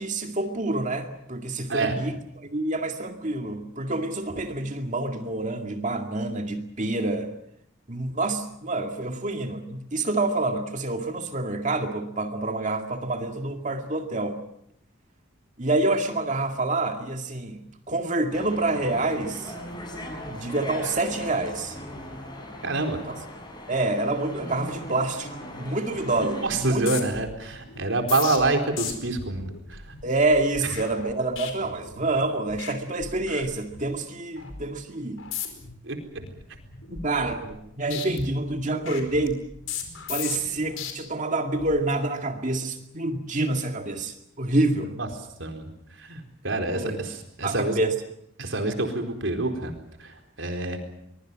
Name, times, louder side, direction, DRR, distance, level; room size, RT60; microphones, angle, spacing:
voice 1, 0.0-7.3 7.9-14.4 15.6-19.5 20.3-21.8 23.1-23.2 23.7-26.9 30.0-35.2 37.0-37.4 37.8-39.4 40.1-44.9 46.8-47.0 47.4-47.9, right 2 dB, 40° right, 5 dB, 2.2 m, -27 dB
sound 1, 18.3-26.5, left 1 dB, 20° left, 6.1 m, -39 dB
voice 2, 22.6-23.0 26.2-29.8 35.8-36.0 36.9-37.0 37.4-37.5 45.0-45.1 45.4-45.7 46.0-47.8 48.4-49.7 50.0-50.8, right 2 dB, 70° right, 5 dB, 4.3 m, -27 dB
sound 2, 25.9-26.2 26.5-32.2 32.5-32.7 33.0-34.0 34.4-34.6 35.2-35.7 36.1-37.6 37.9-40.9 41.5-41.8, left 8 dB, 85° left, 4.8 m, -37 dB
24.0 x 22.5 x 7.5 m, 0.74 s
head